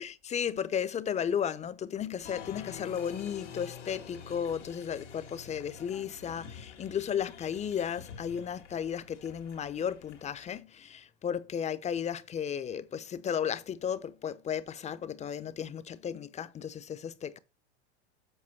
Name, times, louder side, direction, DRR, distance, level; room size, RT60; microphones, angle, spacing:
voice 1, 0.0-17.4, left 8 dB, 20° left, 0.6 m, -34 dB
Applause, 2.2-10.6, left 7 dB, 90° left, 2.1 m, -48 dB
7.8 x 5.1 x 4.5 m
hypercardioid pair, 100°, 35 cm